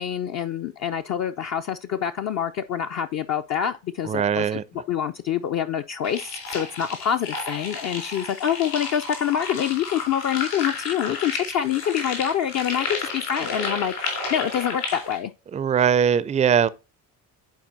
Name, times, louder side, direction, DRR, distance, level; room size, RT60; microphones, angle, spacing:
voice 1, 0.0-4.6 4.9-15.3, left 9 dB, 40° left, 0.5 m, -26 dB
voice 2, 4.0-4.6 15.5-16.7, right 8 dB, 15° right, 0.4 m, -20 dB
sound 1, 6.0-15.2, left 4 dB, 70° left, 3.6 m, -32 dB
10.5 x 4.3 x 2.6 m
hypercardioid pair, 50°, 44 cm